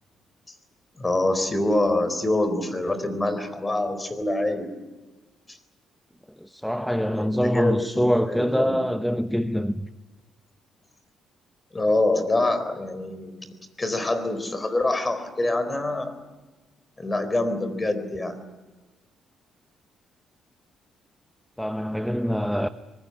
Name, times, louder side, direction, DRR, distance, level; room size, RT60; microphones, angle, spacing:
voice 1, 1.0-4.7 5.5-5.6 7.2-8.8 11.7-16.1 17.0-18.4, left 2 dB, 20° left, 4.1 m, -25 dB
voice 2, 6.4-9.9 21.6-22.7, equal, ahead, 0.9 m, -24 dB
23.5 x 21.0 x 9.9 m
cardioid pair, 90°, 0 cm